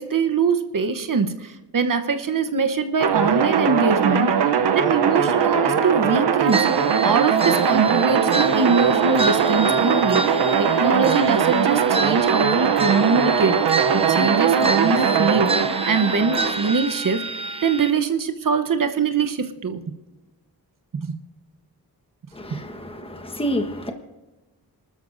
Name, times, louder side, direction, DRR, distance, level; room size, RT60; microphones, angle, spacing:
voice 1, 0.0-4.5 4.7-6.7 7.0-13.6 13.9-17.2 17.6-19.8 21.1-21.2 22.5-22.6, right 5 dB, 55° right, 8 dB, 1.0 m, -23 dB
sound 1, 3.0-16.7, right 7 dB, 90° right, 0.8 m, -20 dB
sound 2, 6.5-17.9, right 3 dB, 15° right, 0.6 m, -29 dB
voice 2, 22.3-23.9, equal, 15° left, 5 dB, 1.3 m, -29 dB
27.5 x 13.0 x 2.6 m, 1.1 s
cardioid pair, 70°, 39 cm